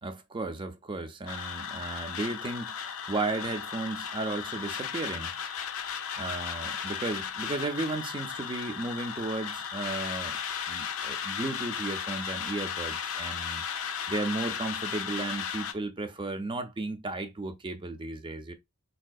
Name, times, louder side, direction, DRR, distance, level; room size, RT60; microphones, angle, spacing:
voice 1, 0.0-5.3 6.2-10.4 10.7-13.7 14.1-18.5, right 2 dB, 20° right, 0.4 m, -34 dB
sound 1, 1.3-15.7, left 7 dB, 70° left, 0.5 m, -35 dB
4.1 x 2.6 x 2.2 m
head